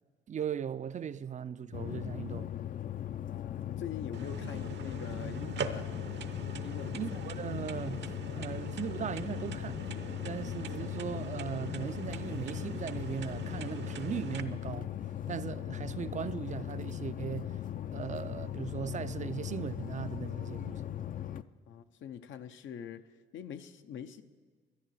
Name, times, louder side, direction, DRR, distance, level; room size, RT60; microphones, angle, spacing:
voice 1, 0.3-2.5 6.9-8.1 8.3-9.8 10.2-14.9 15.3-17.5 17.9-20.8, right 8 dB, 40° right, 0.4 m, -38 dB
sound 1, 1.7-21.4, left 11 dB, 45° left, 0.4 m, -39 dB
voice 2, 3.3-5.9 6.6-7.0 21.7-23.0 23.3-24.2, left 8 dB, 75° left, 0.7 m, -43 dB
sound 2, 4.1-14.4, right 7 dB, 60° right, 0.7 m, -43 dB
11.5 x 10.0 x 7.7 m
cardioid pair, 90°, 20 cm